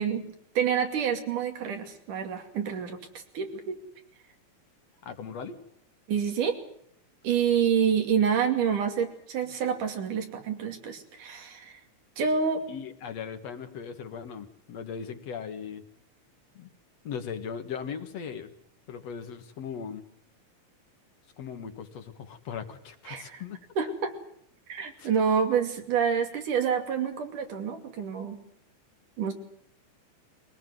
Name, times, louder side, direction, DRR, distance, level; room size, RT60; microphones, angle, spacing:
voice 1, 0.0-3.0 3.3-3.8 6.1-6.6 7.2-11.8 12.2-12.6 23.1-23.4 23.8-24.1 24.7-28.4 29.2-29.3, right 7 dB, 90° right, 5 dB, 4.1 m, -27 dB
voice 2, 5.0-5.6 12.7-15.8 16.6-16.7 17.0-18.5 18.9-20.0 21.4-23.6 25.0-25.3, left 7 dB, 60° left, 8 dB, 2.6 m, -38 dB
22.5 x 18.5 x 9.3 m, 0.68 s
omnidirectional pair, 3.5 m